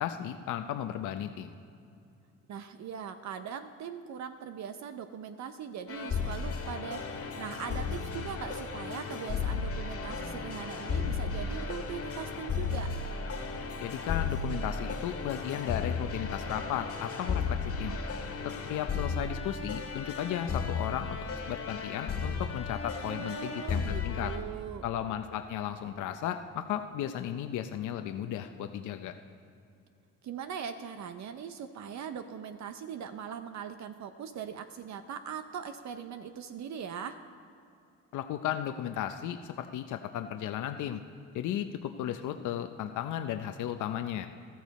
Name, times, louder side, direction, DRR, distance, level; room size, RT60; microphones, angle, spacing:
voice 1, 0.0-1.5 13.8-18.0 18.4-21.2 21.5-24.3 24.8-29.1 38.1-41.0 41.3-44.3, left 10 dB, 80° left, 7 dB, 0.7 m, -35 dB
voice 2, 2.5-12.9 23.0-24.9 30.2-37.2, right 7 dB, 65° right, 9 dB, 0.7 m, -40 dB
sound 1, 5.9-24.4, left 5 dB, 50° left, 1.7 m, -34 dB
14.0 x 13.5 x 4.2 m, 2.6 s
cardioid pair, 90°, 30 cm